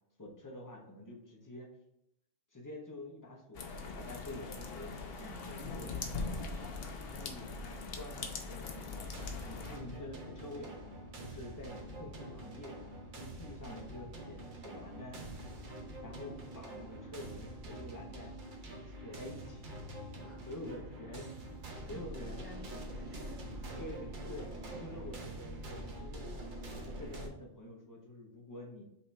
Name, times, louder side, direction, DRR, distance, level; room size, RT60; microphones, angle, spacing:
voice 1, 0.2-1.7 2.5-5.0 5.5-6.0 6.6-9.1 9.4-10.7 11.2-12.8 13.1-15.2 16.0-18.4 18.7-19.9 20.4-21.3 21.9-22.5 23.8-24.0 24.3-26.5 26.8-28.8, left 1 dB, 20° left, -1 dB, 0.7 m, -48 dB
sound 1, 3.5-9.8, left 4 dB, 60° left, 0.8 m, -41 dB
voice 2, 5.2-5.6 14.7-15.2 20.2-20.4 21.9-23.5, right 1 dB, 15° right, 1 dB, 0.5 m, -53 dB
sound 2, 8.7-27.3, right 1 dB, 45° right, 0.8 m, -45 dB
5.4 x 2.9 x 3.2 m, 0.82 s
omnidirectional pair, 1.3 m